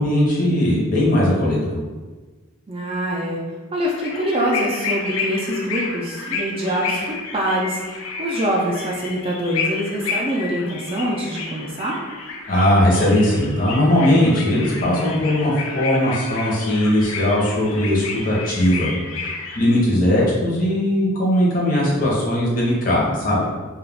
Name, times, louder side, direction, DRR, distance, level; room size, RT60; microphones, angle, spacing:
voice 1, 0.0-1.8 12.5-18.9 19.6-23.5, left 1 dB, 40° left, -5 dB, 0.7 m, -19 dB
voice 2, 2.7-3.4 3.7-7.8 8.2-12.0, equal, 25° right, -3 dB, 0.3 m, -24 dB
sound 1, 3.8-19.6, left 4 dB, 85° left, 0.4 m, -31 dB
2.3 x 2.2 x 3.3 m, 1.3 s
head